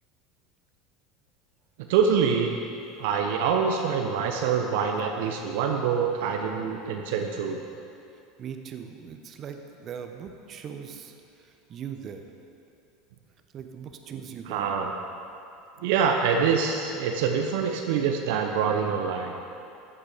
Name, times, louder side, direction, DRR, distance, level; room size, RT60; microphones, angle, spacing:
voice 1, 1.9-2.6 3.0-7.6 14.5-14.9 15.8-19.4, right 6 dB, 65° right, 3 dB, 0.8 m, -25 dB
voice 2, 8.4-12.2 13.5-14.7, right 7 dB, 40° right, 5 dB, 1.1 m, -40 dB
14.0 x 8.7 x 5.2 m, 2.7 s
hypercardioid pair, 75°, 0 cm